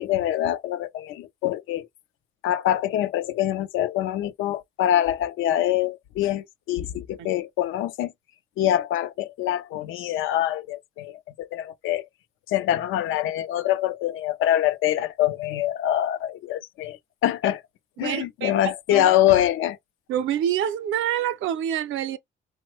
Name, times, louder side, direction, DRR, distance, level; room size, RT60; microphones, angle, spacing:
voice 1, 0.0-1.9 2.4-8.1 8.6-12.1 12.5-17.6 18.0-19.8, left 12 dB, 85° left, 0.4 m, -24 dB
voice 2, 18.0-19.1 20.1-22.2, right 10 dB, 80° right, 0.5 m, -27 dB
2.9 x 2.1 x 3.0 m
cardioid pair, 90°, 20 cm